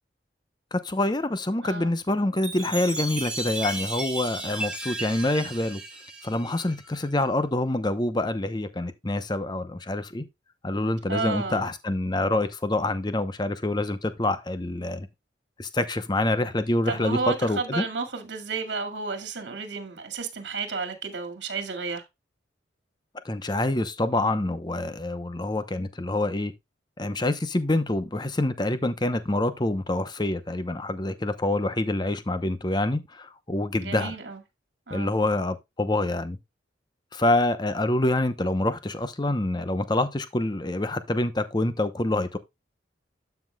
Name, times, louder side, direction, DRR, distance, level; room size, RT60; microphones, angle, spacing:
voice 1, 0.7-5.8 6.2-10.3 10.6-15.1 15.6-17.8 23.2-26.5 27.0-34.1 34.9-36.4 37.1-42.4, left 2 dB, 25° left, 0.7 m, -26 dB
Chime, 2.4-7.0, right 2 dB, 5° right, 1.6 m, -34 dB
voice 2, 11.1-11.7 16.9-22.0 33.8-34.4 34.9-35.1, right 4 dB, 65° right, 2.0 m, -32 dB
12.5 x 5.9 x 2.3 m
head